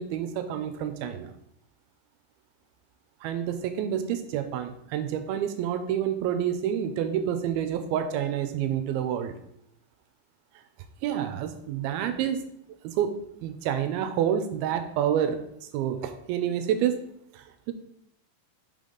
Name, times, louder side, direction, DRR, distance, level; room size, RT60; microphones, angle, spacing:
voice 1, 0.0-1.3 3.2-9.3 11.0-12.4 12.8-15.4 15.7-17.0 17.3-17.7, right 9 dB, 85° right, 8 dB, 2.5 m, -28 dB
5.9 x 5.3 x 3.9 m, 0.73 s
omnidirectional pair, 4.3 m